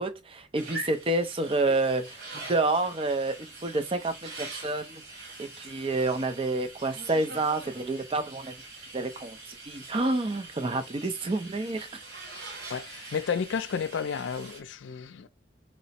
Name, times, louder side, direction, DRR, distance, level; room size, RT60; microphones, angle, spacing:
voice 1, 0.0-5.0 5.4-8.5 8.9-11.9, right 2 dB, 30° right, 0.4 m, -29 dB
sound 1, 0.5-14.6, right 2 dB, 60° right, 1.5 m, -44 dB
voice 2, 12.7-15.3, left 6 dB, 80° left, 0.4 m, -32 dB
3.1 x 2.0 x 4.1 m
head